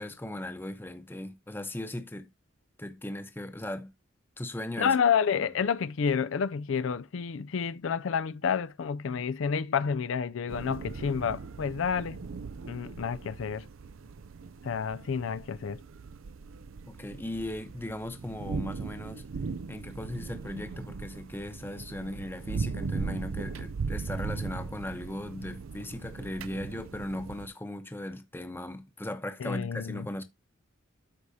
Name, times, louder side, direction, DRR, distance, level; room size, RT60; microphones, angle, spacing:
voice 1, 0.0-2.3 2.8-3.9 4.4-4.9 5.4-5.5 16.9-19.2 19.7-30.2, left 1 dB, 10° left, 0.8 m, -38 dB
voice 2, 4.8-12.2 12.7-13.7 14.6-15.8 29.4-30.1, left 6 dB, 80° left, 0.4 m, -29 dB
sound 1, 10.5-27.5, right 4 dB, 90° right, 0.5 m, -38 dB
13.0 x 4.8 x 2.7 m
head